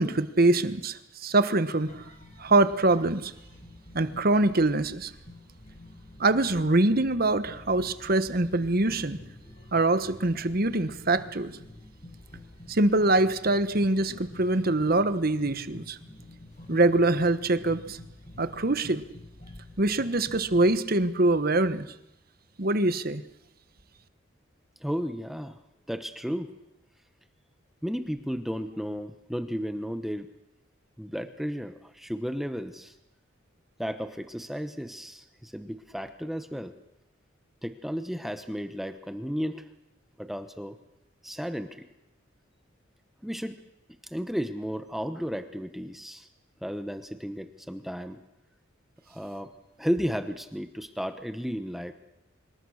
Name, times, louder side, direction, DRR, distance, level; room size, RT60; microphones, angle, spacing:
voice 1, 0.0-2.0 2.4-3.3 3.9-5.1 6.2-9.2 9.7-11.5 12.7-16.0 16.7-18.0 18.4-19.0 19.8-21.9 22.6-23.2, right 2 dB, 45° right, 12 dB, 1.3 m, -24 dB
sound 1, 1.9-20.8, left 1 dB, 35° left, 6.2 m, -48 dB
voice 2, 24.8-25.6 25.9-26.5 27.8-30.3 31.0-32.9 33.8-36.7 37.6-39.6 40.2-40.8 41.2-41.9 43.2-43.6 44.0-46.3 46.6-48.2 49.1-49.5 49.8-51.9, equal, ahead, 9 dB, 1.1 m, -33 dB
25.5 x 22.0 x 6.5 m, 0.88 s
head